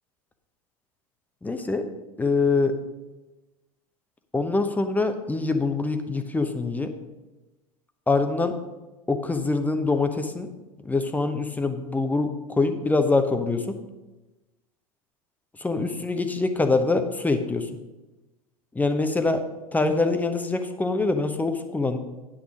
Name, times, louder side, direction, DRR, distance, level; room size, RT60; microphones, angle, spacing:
voice 1, 1.4-1.9 2.2-2.7 4.3-6.9 8.1-8.5 9.1-10.5 10.8-13.8 15.6-17.7 18.7-19.4 19.7-22.0, left 3 dB, 10° left, 8 dB, 0.8 m, -24 dB
9.6 x 6.3 x 5.0 m, 1.1 s
figure-of-eight pair, 90°, 20 cm